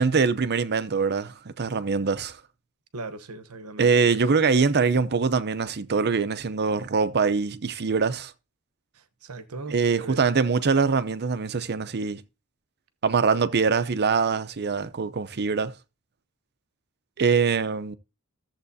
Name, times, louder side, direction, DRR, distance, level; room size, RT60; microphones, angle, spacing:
voice 1, 0.0-2.4 3.8-8.3 9.7-12.2 13.0-15.7 17.2-18.0, right 5 dB, 50° right, 0.6 m, -23 dB
voice 2, 2.9-3.9 8.9-10.2, right 3 dB, 85° right, 1.0 m, -38 dB
14.0 x 7.3 x 2.7 m
head